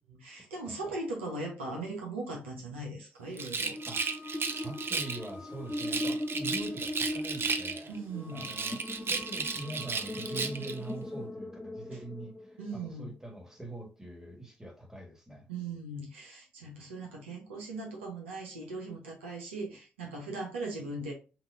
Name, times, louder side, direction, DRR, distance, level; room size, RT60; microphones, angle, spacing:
voice 1, 0.1-3.8 7.9-8.5 12.6-13.1 15.5-21.1, right 2 dB, 85° right, 0.9 m, -39 dB
voice 2, 0.7-1.0 3.9-4.0 4.5-8.0 8.3-8.8 9.1-15.5, right 2 dB, 10° right, 1.5 m, -43 dB
Rattle, 3.3-5.3 5.7-8.0 8.3-10.8, right 5 dB, 40° right, 0.6 m, -34 dB
sound 1, 3.6-13.0, left 1 dB, 10° left, 0.6 m, -39 dB
5.9 x 2.7 x 2.5 m
figure-of-eight pair, 45°, 6 cm